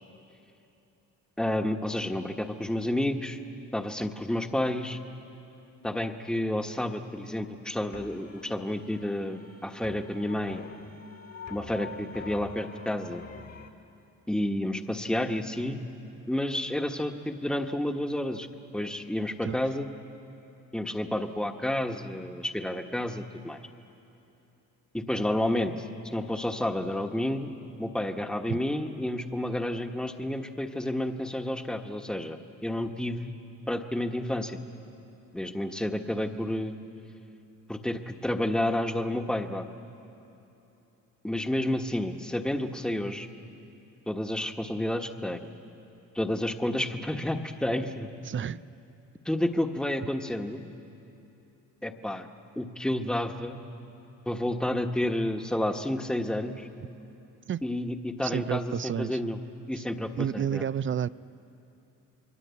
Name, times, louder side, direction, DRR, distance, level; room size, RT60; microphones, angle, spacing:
voice 1, 1.4-3.4 3.7-5.0 5.8-10.6 11.5-13.2 14.3-15.8 16.3-18.5 18.7-19.9 20.7-23.6 24.9-25.7 26.0-27.5 27.8-33.3 33.7-34.6 35.3-36.7 37.7-39.6 41.2-43.3 44.1-45.4 46.1-48.1 49.2-50.6 51.8-52.3 52.6-53.6 54.3-56.7 57.6-59.4 59.7-60.6, left 1 dB, ahead, 5 dB, 1.4 m, -30 dB
sound 1, 7.9-13.7, left 5 dB, 45° left, 1.9 m, -46 dB
voice 2, 48.3-48.6 57.5-57.6 58.2-59.2 60.2-61.1, right 8 dB, 35° right, 18 dB, 0.5 m, -30 dB
28.5 x 22.0 x 8.4 m, 3.0 s
cardioid pair, 90°, 35 cm